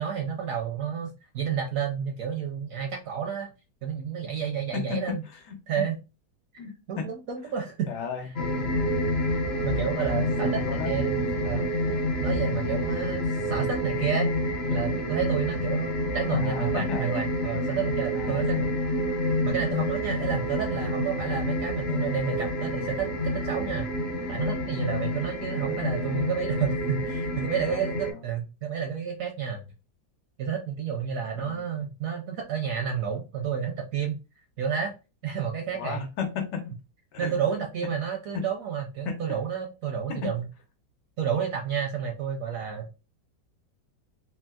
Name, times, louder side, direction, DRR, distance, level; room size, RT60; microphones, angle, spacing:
voice 1, 0.0-3.5 3.8-5.2 5.7-6.0 6.5-7.9 9.6-11.7 12.2-14.3 14.7-18.7 19.4-23.9 24.3-29.7 30.4-34.2 34.6-34.9 35.2-36.1 37.2-40.5 41.2-42.9, right 7 dB, 70° right, 2 dB, 0.8 m, -30 dB
voice 2, 4.7-5.9 6.6-7.1 7.9-8.5 10.6-10.9 16.3-17.1 18.1-18.7 25.5-25.8 27.5-28.2 31.3-31.6 35.7-36.7 37.1-37.6 38.3-38.4 39.0-39.2 40.1-40.3, left 6 dB, 75° left, 6 dB, 1.3 m, -35 dB
sound 1, 8.4-28.1, left 1 dB, 55° left, 0.7 m, -28 dB
3.4 x 2.7 x 2.2 m, 0.30 s
omnidirectional pair, 1.9 m